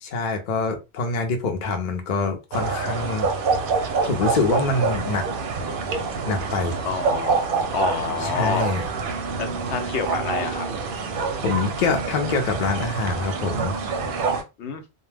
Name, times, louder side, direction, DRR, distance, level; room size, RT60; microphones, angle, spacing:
voice 1, 0.0-3.3 4.0-5.2 6.3-6.8 8.2-8.8 11.4-13.7, left 3 dB, 50° left, 4 dB, 0.7 m, -25 dB
sound 1, 2.5-14.4, right 4 dB, 60° right, 0.6 m, -26 dB
voice 2, 6.8-8.7 9.4-10.7 14.6-14.8, left 5 dB, 80° left, 5 dB, 0.9 m, -28 dB
2.2 x 2.1 x 3.2 m, 0.26 s
omnidirectional pair, 1.1 m